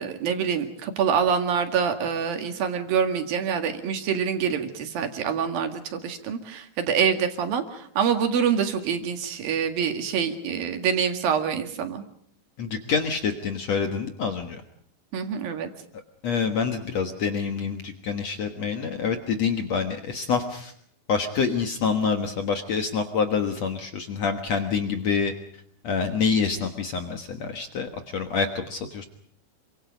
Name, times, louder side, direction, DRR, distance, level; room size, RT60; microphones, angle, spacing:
voice 1, 0.0-12.0 15.1-15.7, right 7 dB, 55° right, 6 dB, 3.3 m, -26 dB
voice 2, 12.6-14.6 16.2-20.7 21.1-25.3 25.8-29.0, left 5 dB, 90° left, 6 dB, 1.4 m, -26 dB
28.0 x 25.5 x 5.2 m, 0.64 s
omnidirectional pair, 5.4 m